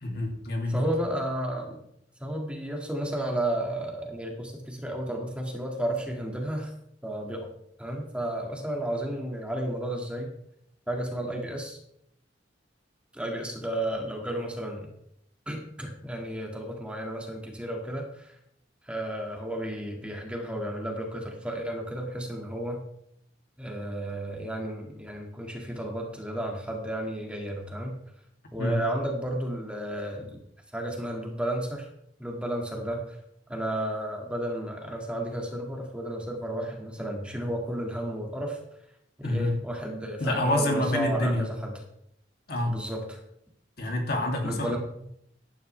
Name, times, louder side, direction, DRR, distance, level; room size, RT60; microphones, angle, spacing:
voice 1, 0.0-0.9 28.6-28.8 39.2-39.5 40.2-41.5 42.5-42.8 43.8-44.8, left 1 dB, 55° left, 1 dB, 2.7 m, -27 dB
voice 2, 0.7-1.8 2.2-6.7 7.0-7.5 7.8-10.3 10.9-11.8 13.1-14.9 15.5-18.4 18.8-22.8 23.6-28.0 28.5-30.4 30.7-31.9 32.2-33.2 33.5-38.6 39.2-41.7 42.7-43.2 44.4-44.8, right 1 dB, 5° right, 0 dB, 2.1 m, -32 dB
15.5 x 11.0 x 3.4 m, 0.73 s
head